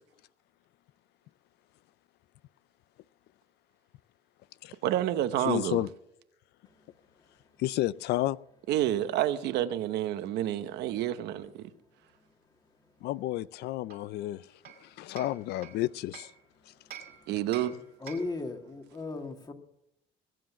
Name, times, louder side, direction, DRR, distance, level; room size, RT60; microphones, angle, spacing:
voice 1, 4.8-5.8 8.7-11.7 17.3-17.8, right 12 dB, 80° right, 1.0 m, -29 dB
voice 2, 5.4-5.9 7.6-8.4 13.0-14.5 14.8-16.3, left 15 dB, 75° left, 0.4 m, -31 dB
Hammer, 13.9-16.4 16.9-18.5, right 9 dB, 60° right, 2.0 m, -49 dB
voice 3, 18.0-19.5, left 3 dB, 25° left, 2.1 m, -36 dB
21.0 x 7.8 x 6.1 m
cardioid pair, 110°, 17 cm